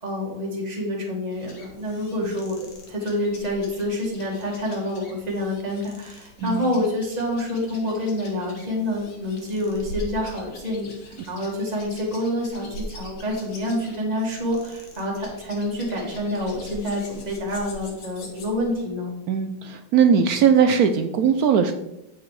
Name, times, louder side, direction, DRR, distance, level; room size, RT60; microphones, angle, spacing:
voice 1, 0.0-19.1, left 1 dB, 20° right, -1 dB, 1.9 m, -27 dB
sound 1, 1.3-18.9, equal, 55° left, 1.9 m, -43 dB
voice 2, 19.3-21.7, right 7 dB, 70° right, 9 dB, 0.9 m, -19 dB
8.6 x 6.1 x 4.7 m, 0.90 s
omnidirectional pair, 2.1 m